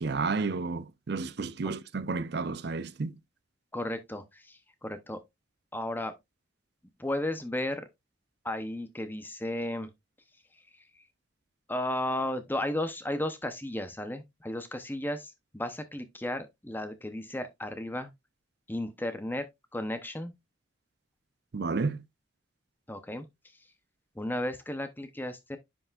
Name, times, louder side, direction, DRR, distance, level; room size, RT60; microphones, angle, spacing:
voice 1, 0.0-3.1 21.5-22.0, right 4 dB, 55° right, 0.5 m, -31 dB
voice 2, 3.7-5.2 5.7-6.1 7.0-7.9 8.4-9.9 10.5-11.0 11.7-18.1 18.7-19.5 19.7-20.3 22.9-23.3 24.2-25.6, left 1 dB, 10° left, 0.8 m, -34 dB
10.0 x 5.7 x 2.4 m
head